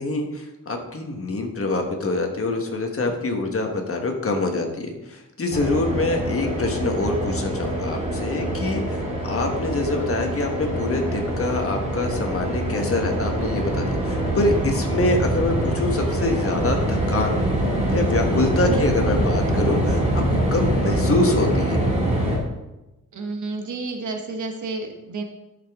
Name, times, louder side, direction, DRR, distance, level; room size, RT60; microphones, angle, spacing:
voice 1, 0.0-17.4 17.8-21.8, left 2 dB, 45° left, 3 dB, 1.4 m, -25 dB
sound 1, 5.5-22.4, right 1 dB, 20° right, 2.0 m, -24 dB
voice 2, 23.1-25.2, right 3 dB, 65° right, 4 dB, 1.1 m, -30 dB
11.5 x 7.0 x 3.6 m, 0.99 s
wide cardioid pair, 155°, 33 cm